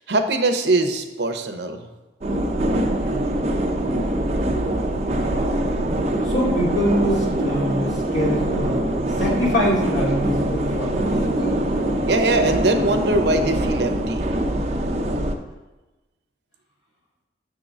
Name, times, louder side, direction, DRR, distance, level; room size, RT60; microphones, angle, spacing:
voice 1, 0.0-1.9 5.6-6.3 12.1-14.3, right 2 dB, 75° right, 7 dB, 0.7 m, -22 dB
sound 1, 2.2-15.3, right 1 dB, 40° right, 0.6 m, -23 dB
voice 2, 6.2-11.6, equal, 80° left, -4 dB, 2.4 m, -24 dB
6.9 x 3.7 x 6.2 m, 1.1 s
head